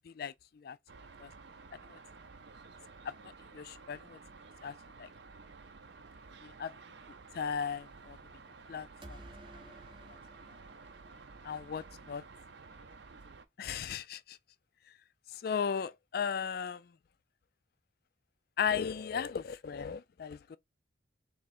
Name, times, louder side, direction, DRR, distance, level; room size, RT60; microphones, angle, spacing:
voice 1, 0.1-0.8 1.2-1.3 1.9-2.0 3.0-3.1 3.5-4.2 4.6-5.1 6.4-6.7 7.3-8.2 8.7-9.2 11.4-12.2 13.6-14.4 15.3-16.9 18.6-20.6, left 7 dB, 50° left, 0.3 m, -36 dB
sound 1, 0.9-13.5, right 4 dB, 60° right, 0.6 m, -53 dB
sound 2, 9.0-11.9, right 1 dB, 25° right, 0.6 m, -54 dB
3.6 x 3.2 x 4.2 m
head